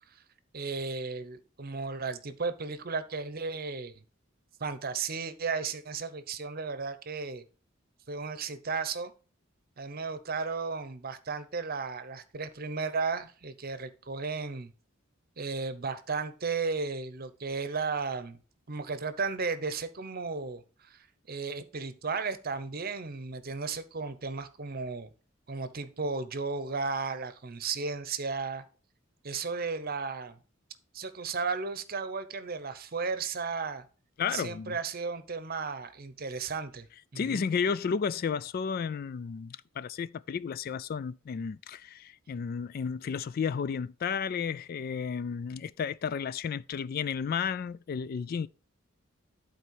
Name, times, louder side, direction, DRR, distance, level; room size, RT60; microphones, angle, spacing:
voice 1, 0.5-4.0 4.6-7.4 8.1-9.1 9.8-14.7 15.4-18.4 18.7-21.0 21.3-25.1 25.5-28.6 29.2-30.4 30.9-33.8 34.3-36.9 37.1-37.4, right 4 dB, 45° right, 0.8 m, -34 dB
voice 2, 34.2-34.8 37.2-48.5, left 6 dB, 45° left, 0.3 m, -32 dB
11.0 x 4.4 x 4.6 m
head